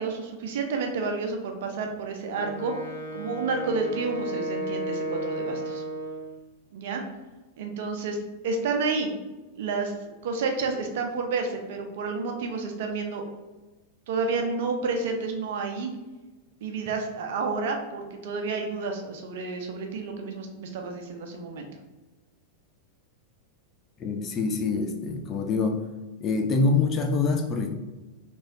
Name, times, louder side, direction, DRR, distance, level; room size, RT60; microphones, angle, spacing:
voice 1, 0.0-2.7 3.1-5.8 6.7-7.0 7.6-8.2 8.4-9.1 9.6-13.3 14.1-15.9 16.6-21.7, right 4 dB, 55° right, 4 dB, 0.5 m, -30 dB
Wind instrument woodwind instrument, 2.3-6.4, right 1 dB, 75° left, 0.6 m, -33 dB
voice 2, 24.0-25.8 26.2-27.7, left 4 dB, 25° left, 4 dB, 0.5 m, -25 dB
3.0 x 3.0 x 2.7 m, 1.2 s
figure-of-eight pair, 90°, 0 cm